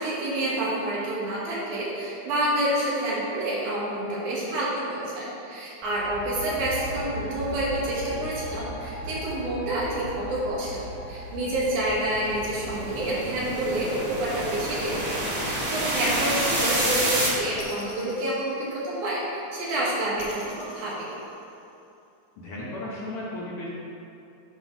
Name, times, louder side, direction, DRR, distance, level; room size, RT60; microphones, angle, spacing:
voice 1, 0.0-21.1, right 1 dB, 80° right, -7 dB, 3.3 m, -28 dB
sound 1, 5.8-13.6, equal, 10° left, 0.5 m, -38 dB
sound 2, 11.3-17.3, right 1 dB, 50° right, 0.7 m, -29 dB
sound 3, 17.6-19.3 20.2-21.9, left 2 dB, 90° left, 3.2 m, -46 dB
voice 2, 22.4-23.7, left 1 dB, 65° left, -6 dB, 1.5 m, -35 dB
9.6 x 3.8 x 5.8 m, 2.7 s
omnidirectional pair, 3.4 m